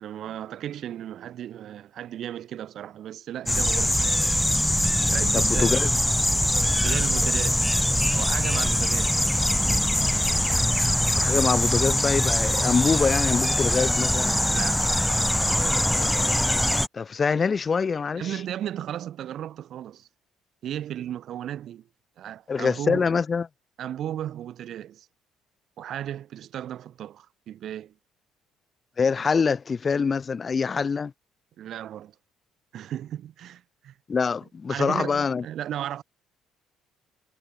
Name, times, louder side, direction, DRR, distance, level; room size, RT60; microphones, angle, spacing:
voice 1, 0.0-3.9 4.2-4.4 5.1-5.7 6.8-7.7 8.1-9.2 14.2-14.9 18.2-20.1 20.6-21.9 22.2-23.1 23.8-25.1 25.8-27.9 31.6-32.1 32.7-33.9 34.7-36.0, right 11 dB, 65° right, 2.7 m, -35 dB
sound 1, 3.5-16.9, left 1 dB, 5° left, 1.2 m, -23 dB
voice 2, 5.3-5.9 11.1-14.3 16.9-18.4 22.5-23.5 29.0-31.1 34.1-35.4, left 5 dB, 35° left, 0.8 m, -25 dB
supercardioid pair, 75°, 0 cm